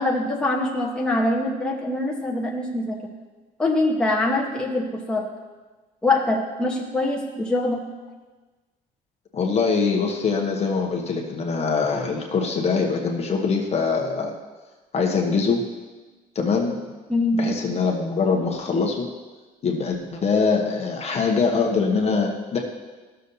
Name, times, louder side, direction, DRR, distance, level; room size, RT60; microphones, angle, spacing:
voice 1, 0.0-3.1 3.6-5.3 6.0-7.9 17.1-17.5, left 2 dB, 5° left, -3 dB, 1.1 m, -24 dB
voice 2, 9.3-14.3 14.9-15.6 16.3-16.8 17.3-19.1 19.6-22.6, left 5 dB, 40° left, 0 dB, 1.0 m, -23 dB
13.0 x 6.7 x 2.8 m, 1.3 s
cardioid pair, 110°, 17 cm